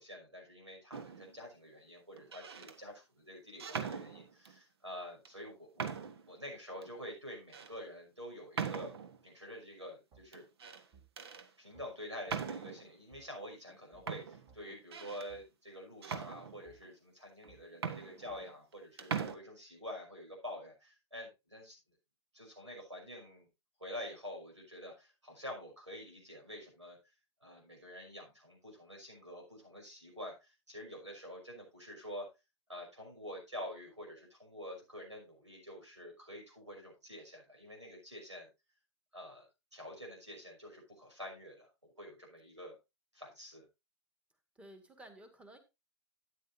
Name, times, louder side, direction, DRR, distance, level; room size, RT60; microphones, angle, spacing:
voice 1, 0.0-5.9 6.3-8.9 9.2-10.4 11.6-21.8 22.3-23.5 23.8-27.0 27.4-32.3 32.7-38.5 39.1-42.8 43.1-43.7, equal, 90° right, 1 dB, 5.8 m, -47 dB
sound 1, 0.9-1.4 2.2-2.8 3.6-4.6 5.2-5.3 5.8-6.3 6.8-6.9 7.5-7.7 8.5-9.2 10.3-10.8 11.2-11.5 12.3-12.9 13.7-13.8 14.1-15.3 16.0-16.9 17.4-17.5 17.7-18.7 19.0-19.4, right 6 dB, 60° right, 1.3 m, -41 dB
sound 2, 10.1-10.2 10.9-11.1 11.7-11.9 12.3-12.4 13.1-13.2 13.9-14.1 14.5-14.6 15.3-15.4 16.1-16.2 16.6-16.8 17.5-17.6 18.3-18.4, right 6 dB, 30° right, 2.4 m, -61 dB
voice 2, 44.6-45.6, right 1 dB, 10° right, 7 dB, 1.9 m, -54 dB
12.5 x 9.5 x 2.7 m, 0.25 s
figure-of-eight pair, 105°, 15 cm